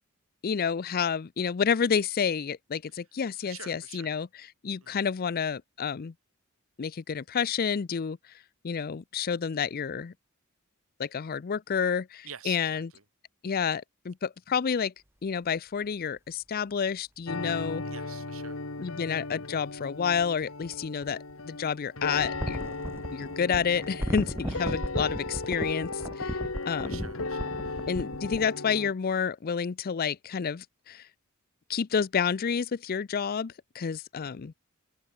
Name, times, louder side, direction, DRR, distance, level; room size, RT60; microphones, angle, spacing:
voice 1, 0.4-4.3 4.6-6.1 6.8-8.2 8.6-10.1 11.0-12.9 13.4-14.9 15.2-17.8 18.8-22.7 23.1-26.4 26.7-27.0 27.9-31.1 31.7-34.5, left 6 dB, 45° left, 0.5 m, -29 dB
voice 2, 3.4-4.1 4.8-5.0 12.2-13.0 17.8-18.6 24.5-24.8 26.9-28.1, right 7 dB, 85° right, 5.6 m, -47 dB
sound 1, 17.3-28.9, left 3 dB, 80° left, 2.0 m, -36 dB
sound 2, 17.9-18.0 20.1-21.3 22.1-28.5, equal, 10° right, 2.1 m, -36 dB
open air
head